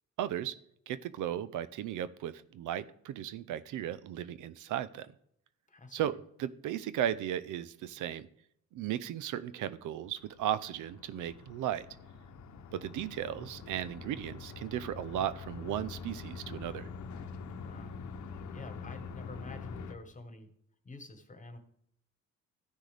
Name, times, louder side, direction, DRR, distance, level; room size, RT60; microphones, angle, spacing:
voice 1, 0.2-0.5 0.9-5.1 5.9-6.1 6.4-8.3 8.7-11.9 12.7-16.9, right 11 dB, 80° right, 15 dB, 0.6 m, -36 dB
voice 2, 5.7-6.2 17.6-18.0 18.5-20.5 20.8-21.6, left 2 dB, 25° left, 8 dB, 1.4 m, -48 dB
sound 1, 10.2-19.9, left 5 dB, 75° left, 0.9 m, -45 dB
14.5 x 6.2 x 3.4 m, 0.70 s
cardioid pair, 90°, 30 cm